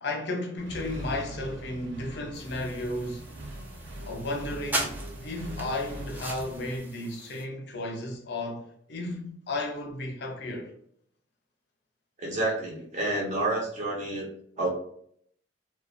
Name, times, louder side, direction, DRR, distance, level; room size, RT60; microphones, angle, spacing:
voice 1, 0.0-3.3 4.0-5.0 5.2-10.7, left 2 dB, 60° left, 0.5 m, -34 dB
Accelerating revving vroom, 0.6-6.8, right 1 dB, 70° right, 0.5 m, -41 dB
sound 1, 2.3-7.4, right 1 dB, 10° right, 0.3 m, -38 dB
voice 2, 12.2-14.3 14.6-14.7, right 2 dB, 40° right, 0.9 m, -29 dB
2.5 x 2.2 x 2.4 m
head